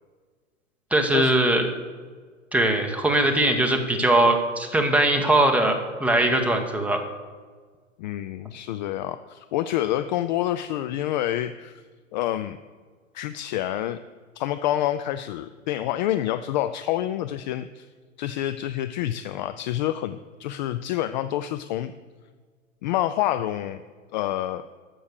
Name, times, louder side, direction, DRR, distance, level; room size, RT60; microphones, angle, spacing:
voice 1, 0.9-1.7 2.5-7.0, right 1 dB, 5° right, 3 dB, 1.2 m, -21 dB
voice 2, 8.0-11.8 12.1-12.6 13.1-14.0 14.4-17.9 18.2-21.9 22.8-23.8 24.1-24.6, left 13 dB, 35° left, 11 dB, 0.4 m, -27 dB
13.5 x 6.3 x 6.7 m, 1.5 s
figure-of-eight pair, 100°, 40 cm